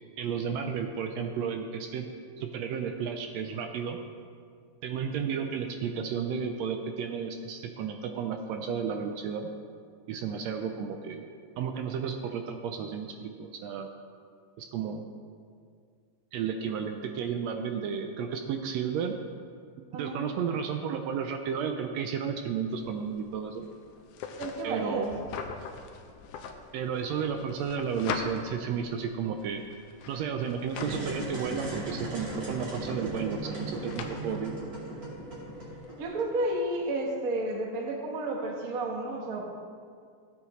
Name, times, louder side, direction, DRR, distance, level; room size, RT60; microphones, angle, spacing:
voice 1, 0.2-2.1 2.4-4.0 4.8-9.5 10.1-13.9 14.6-15.0 16.3-19.1 19.9-23.7 24.6-25.1 26.7-29.6 30.1-34.5, right 7 dB, 80° right, 5 dB, 1.5 m, -33 dB
sound 1, 22.7-36.1, left 6 dB, 85° left, 2.2 m, -43 dB
voice 2, 24.4-25.1 36.0-39.4, right 1 dB, 60° right, 0 dB, 0.9 m, -31 dB
sound 2, 30.7-36.5, right 1 dB, 30° right, 3.3 m, -37 dB
15.0 x 8.3 x 3.1 m, 2.2 s
omnidirectional pair, 3.5 m